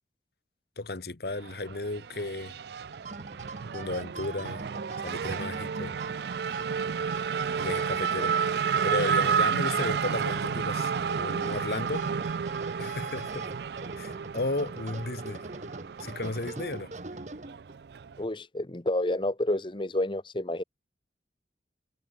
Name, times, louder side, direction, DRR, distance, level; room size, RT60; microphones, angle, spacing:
voice 1, 0.8-2.6 3.7-4.7 5.0-6.0 7.6-8.4 8.8-12.1 12.8-13.5 14.0-15.4 16.0-16.9, left 2 dB, 60° left, 1.2 m, -34 dB
Race car auto racing / Accelerating revving vroom, 1.3-18.2, right 6 dB, 65° right, 0.4 m, -31 dB
sound 1, 2.8-17.8, right 2 dB, 40° right, 1.3 m, -42 dB
voice 2, 18.2-20.6, left 1 dB, 30° left, 1.1 m, -29 dB
head